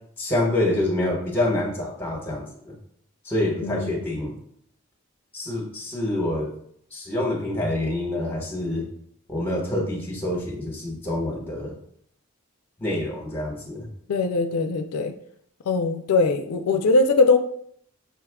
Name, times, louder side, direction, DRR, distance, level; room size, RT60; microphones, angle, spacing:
voice 1, 0.2-2.7 3.2-4.3 5.3-6.5 6.9-8.8 9.3-11.7 12.8-13.9, left 1 dB, 10° left, -2 dB, 1.0 m, -26 dB
voice 2, 3.6-3.9 14.1-15.1 15.7-17.4, left 3 dB, 80° left, 7 dB, 0.4 m, -21 dB
5.8 x 2.3 x 3.5 m, 0.66 s
head